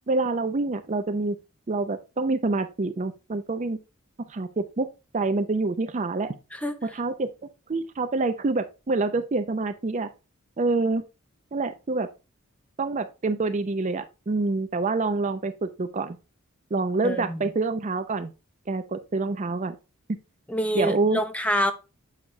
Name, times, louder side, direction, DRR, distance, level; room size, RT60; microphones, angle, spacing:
voice 1, 0.1-1.4 1.7-3.8 4.3-4.9 5.1-6.4 6.8-7.3 7.7-10.1 10.6-11.0 11.5-12.1 12.8-16.2 16.7-18.3 18.7-19.8 20.7-21.2, right 3 dB, 35° right, 0.5 m, -26 dB
voice 2, 17.0-17.5 20.5-21.7, equal, 5° left, 0.7 m, -26 dB
7.8 x 5.7 x 2.2 m
head